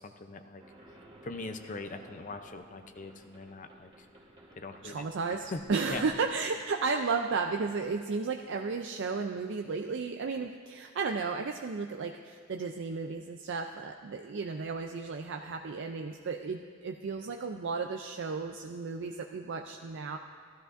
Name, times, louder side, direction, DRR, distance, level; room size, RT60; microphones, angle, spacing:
voice 1, 0.0-4.1 4.5-5.6 5.9-6.1, left 3 dB, 40° left, 7 dB, 0.6 m, -42 dB
sound 1, 0.6-6.6, right 1 dB, 30° right, 1.4 m, -56 dB
voice 2, 4.8-20.2, right 4 dB, 60° right, 4 dB, 0.4 m, -34 dB
16.0 x 12.5 x 2.6 m, 2.1 s
head